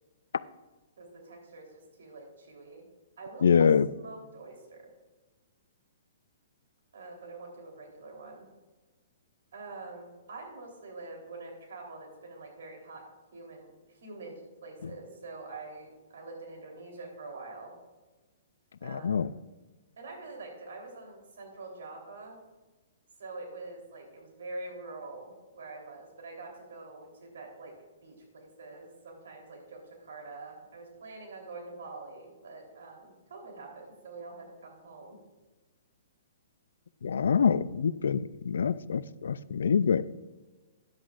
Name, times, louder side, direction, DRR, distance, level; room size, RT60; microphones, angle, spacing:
voice 1, 1.0-2.8 3.2-4.9 6.9-8.4 9.5-13.0 13.3-17.7 18.8-19.4 20.0-22.4 23.2-27.7 28.0-35.2, right 3 dB, 80° right, 1 dB, 3.5 m, -45 dB
voice 2, 3.4-3.9 18.8-19.3 37.0-40.0, left 6 dB, 80° left, 17 dB, 0.4 m, -25 dB
13.5 x 10.0 x 2.5 m, 1.2 s
hypercardioid pair, 150°, 0 cm